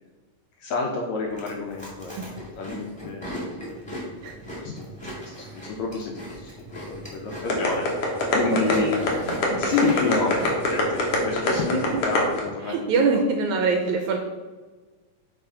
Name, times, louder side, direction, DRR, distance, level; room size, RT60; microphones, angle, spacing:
voice 1, 0.6-2.2 2.6-3.5 4.6-5.1 5.5-9.1 9.5-13.0, left 4 dB, 75° left, 0 dB, 1.7 m, -29 dB
Chewing mastication, 1.2-12.1, equal, 5° left, 1.1 m, -38 dB
sound 1, 7.5-12.4, left 3 dB, 60° left, 1.8 m, -23 dB
voice 2, 8.5-9.4 9.6-9.8 10.1-10.2 11.7-12.0 12.6-14.2, right 4 dB, 80° right, 4 dB, 1.8 m, -25 dB
7.1 x 3.3 x 5.6 m, 1.3 s
omnidirectional pair, 3.9 m